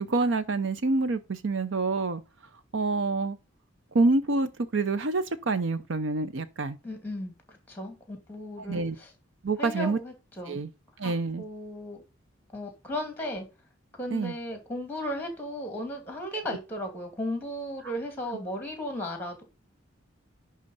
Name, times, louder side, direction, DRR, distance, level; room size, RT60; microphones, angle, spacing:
voice 1, 0.1-2.2 2.7-3.4 3.9-6.8 8.6-9.0 9.4-10.0 10.5-10.7 11.0-11.4 14.1-14.3 16.5-16.6, right 3 dB, 60° right, 0.6 m, -27 dB
voice 2, 6.8-9.1 9.6-10.6 11.0-12.0 12.5-13.5 14.0-19.4, left 1 dB, 10° left, 2.5 m, -35 dB
10.5 x 3.7 x 5.4 m
head